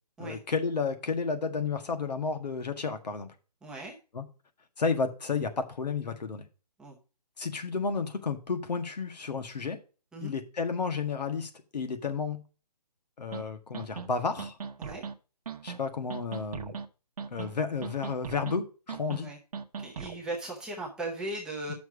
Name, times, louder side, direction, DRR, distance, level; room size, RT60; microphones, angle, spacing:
voice 1, 0.2-3.3 4.1-4.2 4.8-6.5 7.4-9.8 10.2-12.4 13.2-14.6 15.6-16.7 17.3-19.3 21.7-21.8, left 5 dB, 80° left, 1.7 m, -32 dB
voice 2, 3.6-3.9 6.8-7.0 10.1-10.3 14.8-15.0 19.2-19.4 19.8-21.7, right 2 dB, 5° right, 0.8 m, -37 dB
sound 1, 13.3-13.4 13.7-14.1 14.4-15.1 15.5-15.8 16.1-16.9 17.2-17.6 17.8-18.6 18.9-19.2 19.5-20.2, right 6 dB, 60° right, 1.0 m, -38 dB
7.0 x 6.2 x 4.9 m
hypercardioid pair, 160°, 21 cm